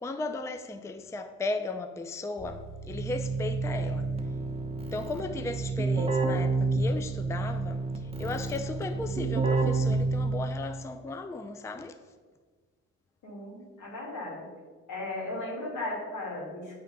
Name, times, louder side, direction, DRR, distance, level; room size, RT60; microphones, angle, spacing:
voice 1, 0.0-4.1 4.9-12.0, left 3 dB, 10° left, 0.4 m, -36 dB
Keyboard (musical), 2.4-10.7, right 3 dB, 20° right, 0.9 m, -29 dB
voice 2, 13.2-14.5 14.9-16.8, left 2 dB, 80° left, 2.3 m, -36 dB
8.3 x 3.4 x 5.3 m
cardioid pair, 90°, 30 cm